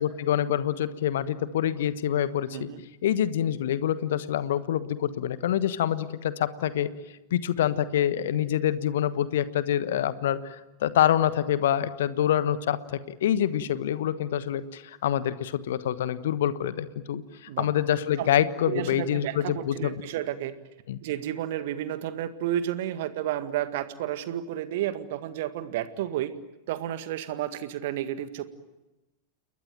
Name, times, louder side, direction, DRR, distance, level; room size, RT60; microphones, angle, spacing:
voice 1, 0.0-2.7 3.0-6.9 7.3-17.2 17.6-19.9 20.9-21.0, left 10 dB, 60° left, 14 dB, 1.3 m, -26 dB
voice 2, 18.7-20.5 21.0-26.3 26.7-28.5, right 12 dB, 55° right, 11 dB, 1.9 m, -31 dB
29.5 x 22.0 x 9.0 m, 1.0 s
figure-of-eight pair, 90°, 0 cm